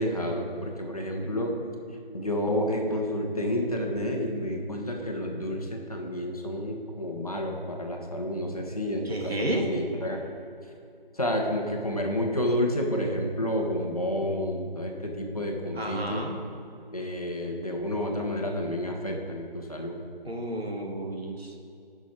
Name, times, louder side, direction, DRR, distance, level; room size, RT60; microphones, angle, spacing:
voice 1, 0.0-1.5 2.1-10.2 11.1-16.2 16.9-20.0, equal, 40° left, 0 dB, 1.3 m, -30 dB
voice 2, 9.0-9.7 15.7-16.4 20.2-21.6, right 1 dB, 90° right, 1 dB, 2.0 m, -32 dB
13.5 x 6.2 x 4.5 m, 2.5 s
figure-of-eight pair, 180°, 30 cm